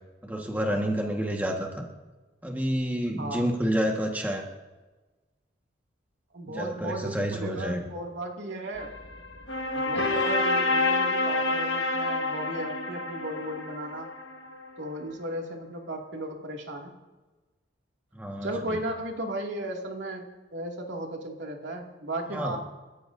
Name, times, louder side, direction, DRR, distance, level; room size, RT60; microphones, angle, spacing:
voice 1, 0.2-1.9 2.4-4.4 6.5-7.8 18.1-18.8 22.3-22.6, equal, 10° right, 0 dB, 1.5 m, -29 dB
voice 2, 3.2-3.5 6.3-8.9 9.7-14.1 14.8-16.9 18.4-22.6, right 1 dB, 80° right, 1 dB, 2.4 m, -35 dB
sound 1, 8.8-14.7, left 2 dB, 70° left, 1.6 m, -28 dB
30.0 x 14.5 x 2.7 m, 1.2 s
head